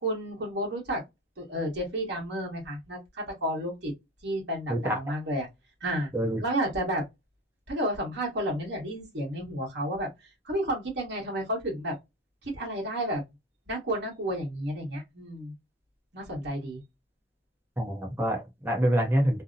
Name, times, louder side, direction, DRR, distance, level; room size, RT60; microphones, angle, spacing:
voice 1, 0.0-1.0 1.4-3.9 4.2-5.5 5.8-6.1 6.4-7.0 7.7-11.9 12.4-13.2 13.7-15.5 16.1-16.8, right 1 dB, 60° right, 1.1 m, -31 dB
voice 2, 4.7-5.2 6.1-6.4 17.8-19.4, equal, 10° right, 0.6 m, -26 dB
2.6 x 2.0 x 2.5 m
head